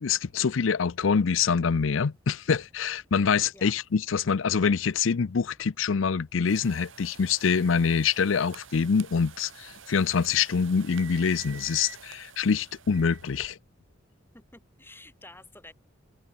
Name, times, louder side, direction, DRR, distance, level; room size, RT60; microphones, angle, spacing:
voice 1, 0.0-13.6, left 6 dB, 75° left, 0.5 m, -25 dB
sound 1, 6.5-13.6, right 7 dB, 80° right, 4.2 m, -48 dB
voice 2, 14.3-15.7, left 2 dB, 10° left, 2.7 m, -50 dB
head